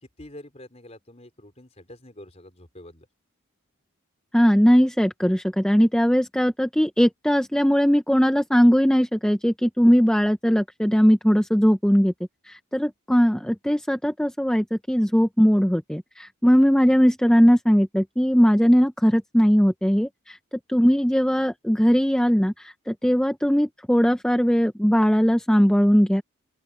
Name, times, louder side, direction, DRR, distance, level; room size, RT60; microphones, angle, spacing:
voice 1, 0.0-3.1, left 1 dB, 30° left, 4.3 m, -46 dB
voice 2, 4.3-12.1 12.5-20.4 20.7-26.2, equal, 5° left, 0.7 m, -19 dB
open air
head